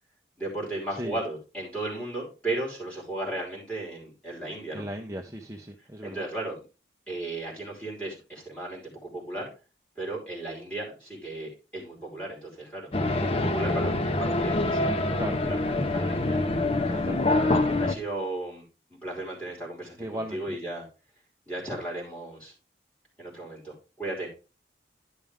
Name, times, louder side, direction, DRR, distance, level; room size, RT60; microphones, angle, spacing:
voice 1, 0.4-4.9 6.0-6.6 7.1-9.5 10.0-12.9 13.2-16.5 17.3-18.6 18.9-20.8 21.5-22.5 23.2-24.3, right 2 dB, 5° left, -4 dB, 4.7 m, -35 dB
voice 2, 4.7-6.2 15.2-15.4 16.7-17.3 20.0-20.6, equal, 20° right, 2 dB, 0.7 m, -37 dB
sound 1, 12.9-17.9, left 2 dB, 35° left, 0.7 m, -25 dB
12.0 x 6.1 x 3.6 m, 0.31 s
head